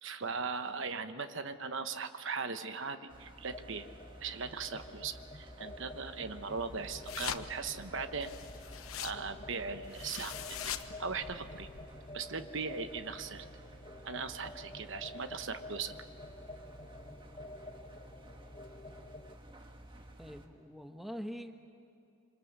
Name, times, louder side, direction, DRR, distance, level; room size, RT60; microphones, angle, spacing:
voice 1, 0.0-3.9 4.2-8.3 9.0-10.7 11.0-11.7 12.1-13.4 14.0-15.9, right 5 dB, 60° right, 9 dB, 1.0 m, -39 dB
Engine, 3.1-20.5, right 1 dB, 25° right, 1.6 m, -53 dB
sound 1, 3.5-19.4, left 2 dB, 25° left, 1.0 m, -50 dB
sound 2, 6.6-11.8, left 8 dB, 80° left, 1.0 m, -44 dB
voice 2, 20.2-21.6, equal, ahead, 5 dB, 1.1 m, -44 dB
26.5 x 26.5 x 6.7 m, 2.6 s
head